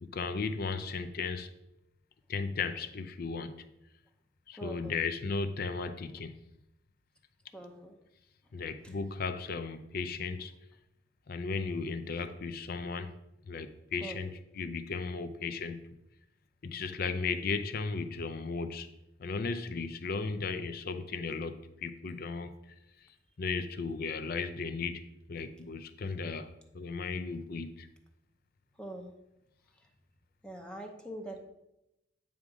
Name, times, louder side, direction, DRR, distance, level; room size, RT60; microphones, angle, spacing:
voice 1, 0.0-1.5 2.3-3.6 4.5-6.4 8.5-10.5 11.3-13.1 13.5-15.8 16.6-18.9 19.2-22.5 23.4-25.0 25.3-26.5 26.7-27.9, left 4 dB, 50° left, 10 dB, 0.5 m, -35 dB
voice 2, 4.5-5.0 7.5-8.0 8.8-9.0 14.0-14.2 28.8-29.1 30.4-31.5, right 1 dB, 5° left, 3 dB, 0.7 m, -43 dB
9.2 x 3.6 x 4.9 m, 0.88 s
head